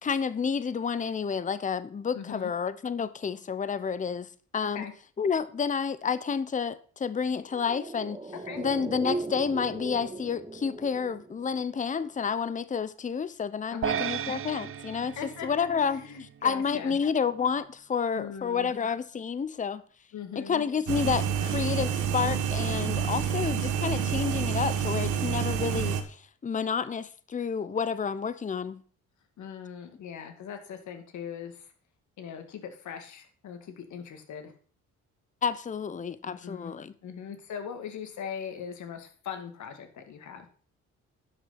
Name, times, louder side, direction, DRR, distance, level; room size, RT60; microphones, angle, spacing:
voice 1, 0.0-4.9 5.2-8.2 8.6-15.2 15.4-16.0 16.4-19.8 20.4-28.8 35.4-36.9, left 6 dB, 25° left, 0.7 m, -30 dB
voice 2, 2.1-2.5 4.7-4.9 8.5-8.6 13.7-14.0 15.2-15.5 15.8-17.0 18.1-18.7 20.1-20.6 29.4-31.7 32.2-34.5 36.2-36.7 37.0-40.5, left 7 dB, 70° left, 2.2 m, -40 dB
sound 1, 7.4-12.0 12.3-12.4, right 3 dB, 15° right, 1.4 m, -38 dB
sound 2, 13.8-16.3, right 9 dB, 45° right, 0.6 m, -34 dB
sound 3, 20.9-26.0, right 8 dB, 85° right, 1.4 m, -28 dB
11.0 x 6.2 x 5.9 m
cardioid pair, 90°, 30 cm